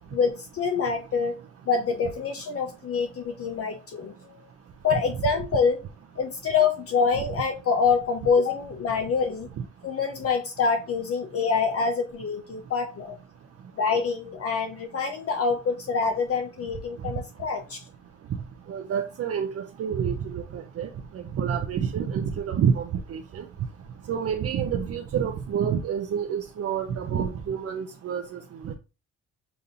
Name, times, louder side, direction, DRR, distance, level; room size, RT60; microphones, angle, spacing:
voice 1, 0.1-1.4 1.7-4.4 4.8-5.8 6.2-9.5 9.8-13.2 13.8-17.8, left 5 dB, 50° left, 0.8 m, -26 dB
voice 2, 18.7-19.5 19.8-20.9 21.3-22.8 23.1-23.4 24.1-28.4 28.6-28.8, right 7 dB, 50° right, 0.7 m, -28 dB
6.9 x 2.7 x 2.6 m
cardioid pair, 90°, 30 cm